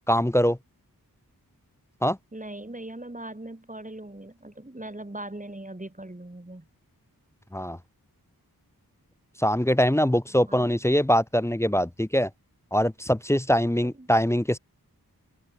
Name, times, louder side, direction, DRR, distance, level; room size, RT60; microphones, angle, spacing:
voice 1, 0.1-0.6 2.0-2.2 7.5-7.8 9.4-12.3 12.7-14.6, equal, 5° left, 0.6 m, -23 dB
voice 2, 2.3-6.7 10.5-10.7 14.0-14.1, right 1 dB, 20° right, 4.4 m, -40 dB
open air
wide cardioid pair, 75°, 37 cm